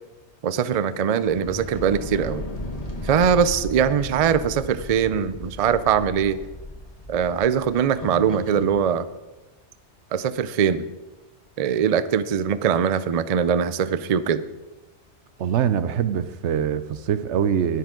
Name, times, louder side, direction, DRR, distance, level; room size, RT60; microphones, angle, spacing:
voice 1, 0.4-2.5 3.0-6.4 7.1-9.1 10.1-10.8 11.6-14.5, right 7 dB, 50° right, 14 dB, 0.4 m, -22 dB
sound 1, 1.2-8.8, left 1 dB, 35° left, 1.6 m, -36 dB
voice 2, 15.4-17.8, right 8 dB, 80° right, 13 dB, 1.0 m, -23 dB
20.5 x 7.3 x 3.8 m, 1.1 s
omnidirectional pair, 1.2 m